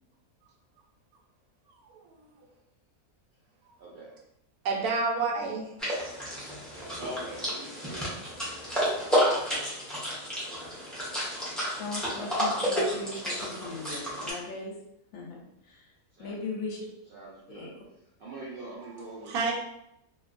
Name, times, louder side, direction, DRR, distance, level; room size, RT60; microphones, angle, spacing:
voice 1, 1.9-2.2 3.7-3.8 4.6-5.7 19.3-19.5, right 4 dB, 85° right, -1 dB, 1.1 m, -29 dB
voice 2, 3.8-4.2 6.7-8.6 16.1-16.3 17.1-17.8 18.2-19.5, right 1 dB, 65° right, -7 dB, 0.5 m, -43 dB
sound 1, 5.8-14.3, equal, ahead, 0.5 m, -31 dB
voice 3, 11.7-14.7 15.1-15.9 16.2-16.8 17.6-17.7, left 3 dB, 70° left, 0 dB, 0.9 m, -38 dB
2.7 x 2.2 x 2.5 m, 0.80 s
omnidirectional pair, 1.6 m